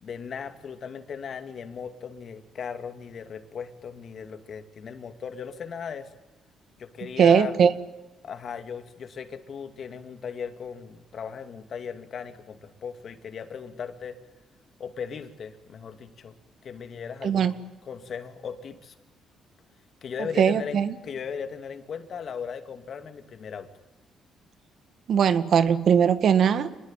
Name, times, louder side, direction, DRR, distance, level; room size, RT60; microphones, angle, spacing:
voice 1, 0.0-6.1 6.8-7.6 8.2-14.2 14.8-16.3 16.6-17.5 17.8-18.9 20.0-23.7, left 6 dB, 55° left, 8 dB, 2.7 m, -37 dB
voice 2, 7.2-7.7 17.2-17.5 20.4-20.9 25.1-26.7, right 7 dB, 60° right, 12 dB, 1.8 m, -20 dB
26.5 x 20.5 x 9.3 m, 1.1 s
cardioid pair, 90°, 0 cm